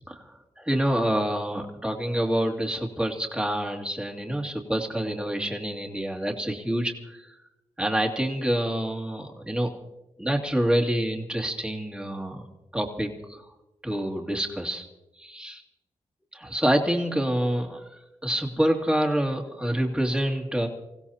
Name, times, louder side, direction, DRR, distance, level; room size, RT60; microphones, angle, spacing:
voice 1, 0.0-7.3 7.8-9.7 10.2-12.4 12.7-13.4 13.8-14.9 15.2-15.6 16.3-17.8 18.2-20.7, right 1 dB, 5° right, 1 dB, 2.4 m, -27 dB
26.5 x 16.0 x 2.9 m, 0.96 s
cardioid pair, 65°, 13 cm